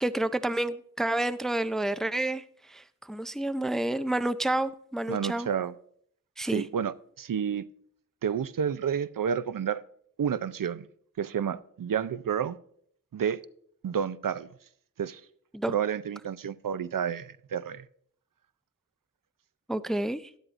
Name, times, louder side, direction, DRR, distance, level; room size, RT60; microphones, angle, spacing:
voice 1, 0.0-5.5 6.4-6.6 15.5-15.7 19.7-20.3, right 1 dB, ahead, 0.4 m, -29 dB
voice 2, 5.1-5.7 6.4-7.7 8.2-9.8 10.2-10.9 11.2-12.6 13.1-13.4 13.8-14.5 15.0-15.2 15.7-17.9, right 8 dB, 70° right, 0.5 m, -30 dB
12.5 x 11.0 x 2.5 m
wide cardioid pair, 65°, 35 cm